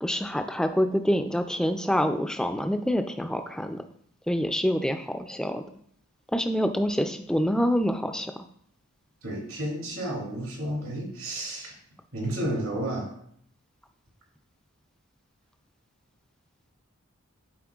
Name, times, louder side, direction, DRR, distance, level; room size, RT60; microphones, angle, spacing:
voice 1, 0.0-3.8 4.3-5.6 6.3-8.4, equal, 5° left, 7 dB, 0.3 m, -26 dB
voice 2, 9.2-11.7 12.1-13.1, right 1 dB, 75° right, -2 dB, 2.7 m, -31 dB
12.0 x 4.3 x 2.4 m, 0.66 s
head